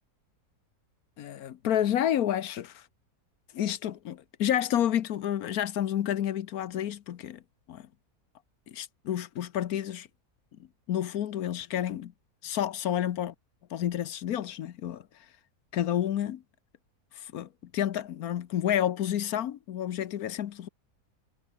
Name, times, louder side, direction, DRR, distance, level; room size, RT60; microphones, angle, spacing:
voice 1, 1.2-2.8 3.5-7.4 7.7-7.9 8.7-10.1 10.9-12.1 12.4-13.3 13.7-15.1 15.7-16.4 17.1-20.7, left 11 dB, 70° left, 1.3 m, -30 dB
omnidirectional pair, 1.6 m